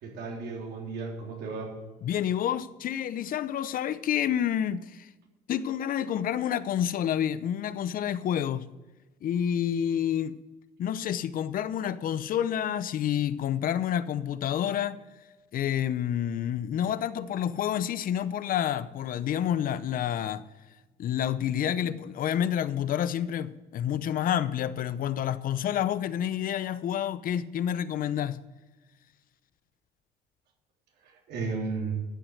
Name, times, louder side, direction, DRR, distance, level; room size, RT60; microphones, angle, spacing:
voice 1, 0.0-1.8 31.0-31.9, right 4 dB, 75° right, 3.6 m, -34 dB
voice 2, 2.0-5.1 5.5-8.7 9.2-10.4 10.8-15.0 15.5-20.4 21.0-28.5, left 10 dB, 55° left, 0.8 m, -29 dB
13.0 x 7.8 x 6.5 m
cardioid pair, 110°, 17 cm